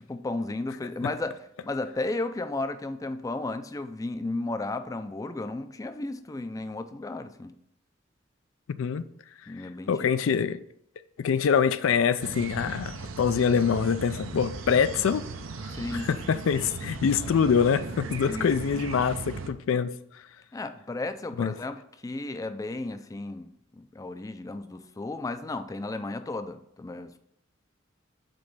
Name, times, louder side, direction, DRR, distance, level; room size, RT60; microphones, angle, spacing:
voice 1, 0.1-1.4 1.6-7.5 9.5-10.0 15.7-16.1 17.2-17.4 18.3-18.5 20.5-27.2, left 2 dB, 15° left, 0.3 m, -34 dB
voice 2, 9.9-10.6 11.2-15.2 15.9-19.9 21.4-21.5, left 6 dB, 90° left, 0.4 m, -25 dB
sound 1, 12.2-19.5, right 4 dB, 80° right, 0.6 m, -37 dB
5.2 x 4.1 x 5.9 m
head